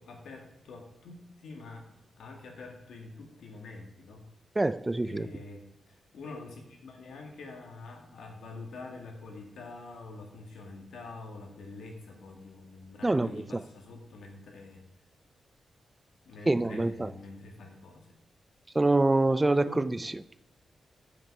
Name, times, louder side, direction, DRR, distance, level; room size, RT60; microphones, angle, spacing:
voice 1, 0.0-4.2 5.0-14.9 16.3-18.1 19.7-20.0, left 3 dB, 85° left, 2.0 m, -46 dB
voice 2, 4.6-5.3 13.0-13.6 16.5-17.1 18.7-20.1, right 2 dB, 15° right, 0.3 m, -25 dB
7.7 x 7.5 x 4.9 m
wide cardioid pair, 125°, 0 cm